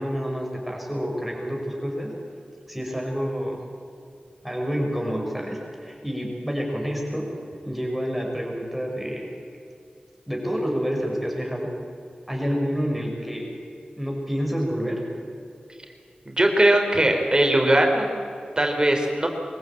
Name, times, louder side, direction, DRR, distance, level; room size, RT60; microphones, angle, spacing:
voice 1, 0.0-2.2 2.7-3.6 4.4-7.3 7.6-9.3 10.3-11.7 12.3-13.5 14.0-15.0, equal, 5° right, -1 dB, 5.8 m, -28 dB
voice 2, 16.3-18.1 18.6-19.3, right 1 dB, 30° right, 2 dB, 3.7 m, -20 dB
23.0 x 15.0 x 8.7 m, 2.5 s
cardioid pair, 50°, 3 cm